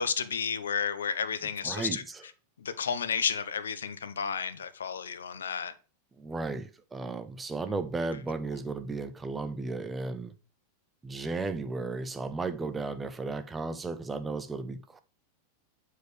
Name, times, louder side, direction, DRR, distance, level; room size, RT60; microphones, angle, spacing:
voice 1, 0.0-2.0 2.6-5.7, left 6 dB, 70° left, 0.6 m, -32 dB
voice 2, 1.6-2.0 6.2-10.3 11.0-15.0, right 3 dB, 15° right, 0.7 m, -34 dB
7.7 x 4.7 x 3.3 m
figure-of-eight pair, 90°, 0 cm